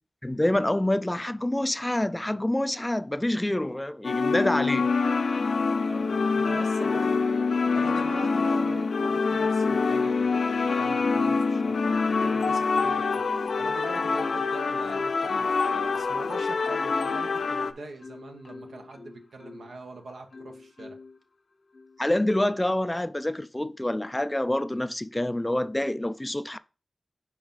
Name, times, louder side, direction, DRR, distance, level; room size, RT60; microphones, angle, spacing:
voice 1, 0.2-4.9 22.0-26.6, left 1 dB, 15° left, 0.4 m, -27 dB
sound 1, 4.0-17.7, left 4 dB, 80° left, 0.5 m, -25 dB
voice 2, 5.6-21.0, right 3 dB, 85° right, 1.1 m, -43 dB
Marimba xylophone, 10.6-12.4 12.9-13.8 14.3-19.8 20.3-21.2 21.7-22.0, left 3 dB, 65° left, 0.9 m, -45 dB
4.8 x 4.6 x 5.3 m
cardioid pair, 65°, 0 cm